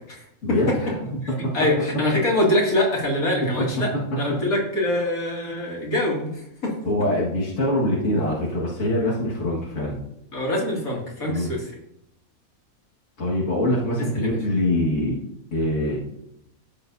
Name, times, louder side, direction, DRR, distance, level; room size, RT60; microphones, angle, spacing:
voice 1, 0.4-1.1 6.8-10.0 11.3-11.5 13.2-15.2 15.5-16.0, left 1 dB, 60° left, -6 dB, 2.2 m, -24 dB
voice 2, 1.5-3.9 4.2-6.7 10.3-11.6 14.2-14.3, left 1 dB, 75° left, -3 dB, 3.0 m, -24 dB
15.0 x 6.8 x 2.7 m, 0.81 s
omnidirectional pair, 1.5 m